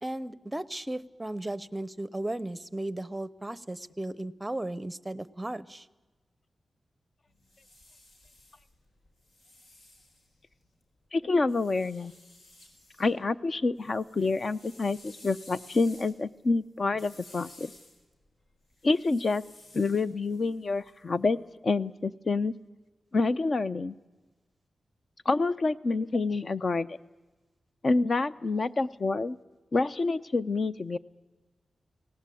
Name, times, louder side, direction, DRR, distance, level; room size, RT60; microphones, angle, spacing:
voice 1, 0.0-5.9, right 1 dB, 10° right, 17 dB, 0.8 m, -35 dB
sound 1, 7.3-10.8 11.5-13.1 13.5-21.4, left 1 dB, 75° left, 4.4 m, -55 dB
voice 2, 11.1-12.1 13.0-17.7 18.8-19.4 19.7-21.4 21.6-22.5 23.1-23.9 25.2-27.0 27.8-29.4 29.7-31.0, left 3 dB, 45° left, 14 dB, 0.7 m, -27 dB
29.5 x 18.5 x 8.5 m, 1.2 s
wide cardioid pair, 115°, 0 cm